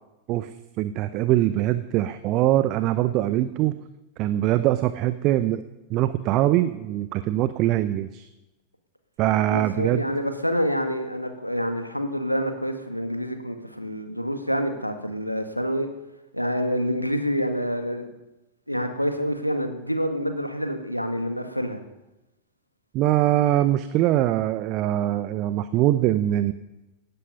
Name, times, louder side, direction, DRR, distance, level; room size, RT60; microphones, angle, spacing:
voice 1, 0.8-3.8 4.2-5.6 5.9-8.3 9.2-10.0 22.9-26.5, right 14 dB, 40° right, 13 dB, 0.7 m, -22 dB
voice 2, 9.5-15.9 16.3-18.1 18.7-21.8, equal, 90° left, 7 dB, 1.7 m, -27 dB
17.5 x 13.5 x 5.5 m, 1.0 s
figure-of-eight pair, 90°, 0 cm